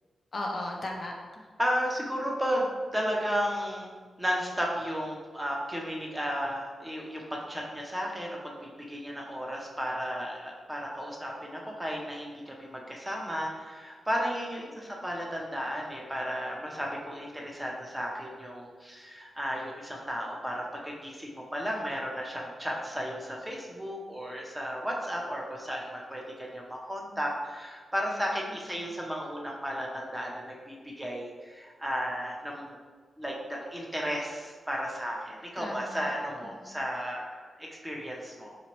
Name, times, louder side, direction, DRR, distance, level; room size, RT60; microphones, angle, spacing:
voice 1, 0.3-1.4 14.7-14.9 35.6-36.1 36.6-36.8, left 1 dB, 40° left, 0 dB, 0.5 m, -37 dB
voice 2, 1.6-3.9 4.2-32.8 33.2-38.6, equal, 10° right, -2 dB, 0.6 m, -34 dB
4.1 x 3.0 x 2.9 m, 1.5 s
wide cardioid pair, 120°, 0 cm